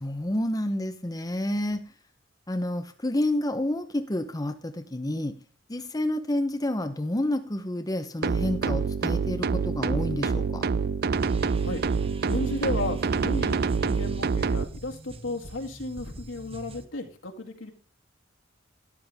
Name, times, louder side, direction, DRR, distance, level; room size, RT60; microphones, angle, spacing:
voice 1, 0.0-1.8 2.5-5.4 5.7-10.6, left 1 dB, 20° left, 7 dB, 0.8 m, -29 dB
sound 1, 8.2-14.7, right 5 dB, 55° right, 0.5 m, -26 dB
sound 2, 11.1-16.8, right 1 dB, 30° right, 1.0 m, -43 dB
voice 2, 12.2-17.7, left 2 dB, 80° left, 3 dB, 2.2 m, -34 dB
13.0 x 11.0 x 3.5 m, 0.38 s
head